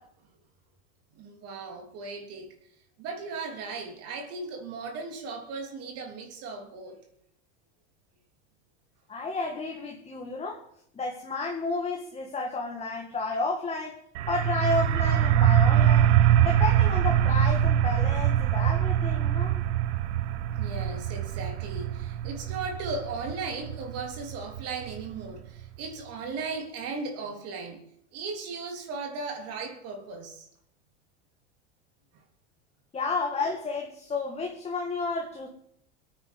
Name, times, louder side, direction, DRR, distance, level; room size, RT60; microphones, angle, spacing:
voice 1, 1.1-2.5 3.0-7.0 20.5-27.8 28.1-30.5, right 4 dB, 45° right, 3.3 m, -37 dB
voice 2, 9.1-10.6 11.0-14.0 14.3-16.1 16.4-19.6 32.9-35.5, left 3 dB, 20° left, 2.1 m, -31 dB
sound 1, 14.1-25.6, right 10 dB, 85° right, 1.1 m, -24 dB
23.5 x 9.4 x 5.4 m
supercardioid pair, 130°, 33 cm